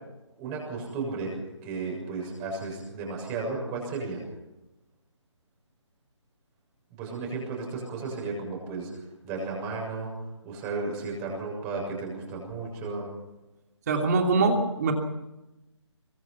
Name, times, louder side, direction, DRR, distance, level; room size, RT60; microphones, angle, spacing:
voice 1, 0.4-1.4 1.6-4.2 7.0-8.9 9.2-10.1 10.4-13.0, right 3 dB, 15° right, -1 dB, 6.9 m, -34 dB
voice 2, 13.9-14.9, right 3 dB, 35° right, 3 dB, 3.0 m, -23 dB
24.0 x 21.5 x 5.8 m, 0.99 s
figure-of-eight pair, 160°, 16 cm